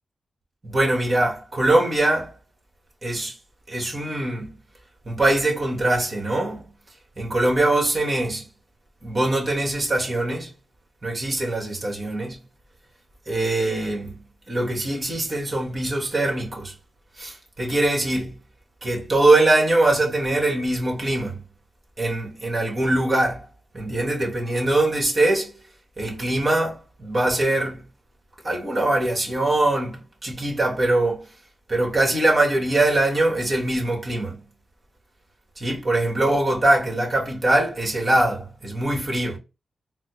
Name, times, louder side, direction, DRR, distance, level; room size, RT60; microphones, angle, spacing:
voice 1, 0.6-2.3 3.0-3.3 3.7-4.5 5.0-6.6 7.2-8.4 9.0-10.5 11.0-12.4 13.3-14.1 14.5-16.7 17.2-18.3 18.8-21.4 22.0-23.4 23.7-25.5 26.0-27.8 28.4-31.2 31.7-34.4 35.6-39.4, right 2 dB, 45° right, 1.5 m, -22 dB
4.0 x 2.0 x 3.2 m
supercardioid pair, 40°, 0 cm